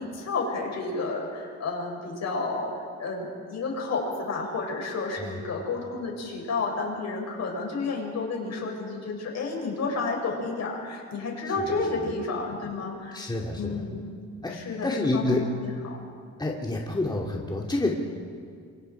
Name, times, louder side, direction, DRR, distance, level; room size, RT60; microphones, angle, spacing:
voice 1, 0.0-2.7 3.0-13.2 13.5-14.1 14.5-15.7, left 3 dB, 60° left, -1 dB, 7.2 m, -31 dB
voice 2, 13.1-13.8 14.4-15.6 16.4-17.9, left 2 dB, 15° left, -2 dB, 2.8 m, -28 dB
28.5 x 24.5 x 4.8 m, 2.1 s
cardioid pair, 90°, 30 cm